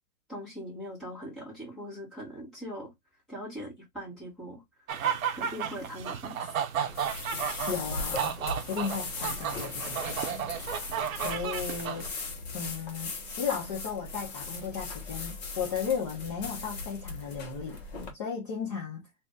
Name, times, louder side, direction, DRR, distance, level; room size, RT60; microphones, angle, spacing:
voice 1, 0.3-2.9 3.3-4.6 5.3-6.5, equal, ahead, 1.1 m, -41 dB
sound 1, 4.9-12.1, right 8 dB, 65° right, 0.7 m, -33 dB
sound 2, 6.9-18.1, left 3 dB, 45° left, 1.0 m, -38 dB
voice 2, 7.7-8.4 8.7-10.5 11.1-12.1 12.5-19.0, left 6 dB, 20° left, 0.7 m, -35 dB
2.6 x 2.5 x 3.3 m
hypercardioid pair, 165°, 45 cm